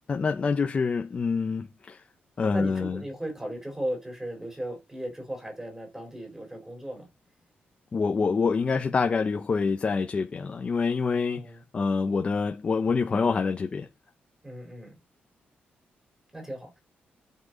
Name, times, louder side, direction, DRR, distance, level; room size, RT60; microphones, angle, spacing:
voice 1, 0.1-2.0 2.4-3.0 7.9-13.9, left 5 dB, 30° left, 0.9 m, -26 dB
voice 2, 2.4-7.1 11.1-11.6 14.4-15.0 16.3-16.8, right 1 dB, 10° right, 4.5 m, -36 dB
11.5 x 6.0 x 4.0 m
wide cardioid pair, 160°, 4 cm